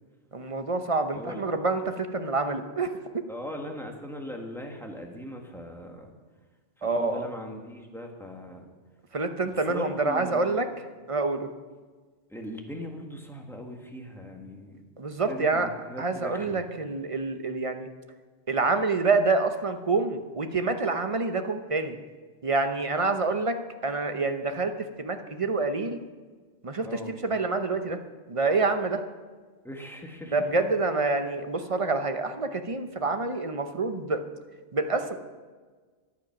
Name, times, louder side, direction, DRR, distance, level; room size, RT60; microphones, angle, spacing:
voice 1, 0.3-2.9 6.8-7.2 9.1-10.7 11.1-11.5 15.0-15.7 16.0-17.9 18.5-22.0 22.4-23.6 23.8-24.7 25.0-26.0 26.6-28.0 28.3-29.0 30.3-34.2 34.7-35.2, right 3 dB, 35° right, 8 dB, 0.8 m, -27 dB
voice 2, 1.1-1.4 3.3-6.1 6.8-8.7 9.7-10.7 12.3-14.8 15.3-16.6 26.8-27.1 29.6-30.5, equal, ahead, 1 dB, 1.7 m, -39 dB
14.0 x 10.5 x 6.0 m, 1.4 s
omnidirectional pair, 1.1 m